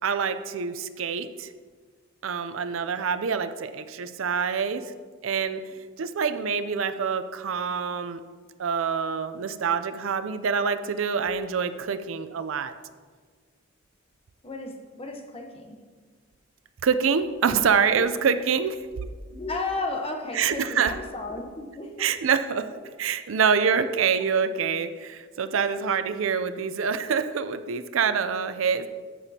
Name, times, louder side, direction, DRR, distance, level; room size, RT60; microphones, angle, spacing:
voice 1, 0.0-1.5 2.2-4.9 5.2-5.6 6.0-8.2 8.6-12.7 16.8-18.8 20.3-20.9 22.0-22.7 23.0-28.9, right 6 dB, 70° right, 11 dB, 0.5 m, -26 dB
voice 2, 14.4-15.8 17.9-18.0 19.2-22.1, left 2 dB, 30° left, 4 dB, 0.9 m, -34 dB
14.0 x 6.9 x 2.8 m, 1.5 s
head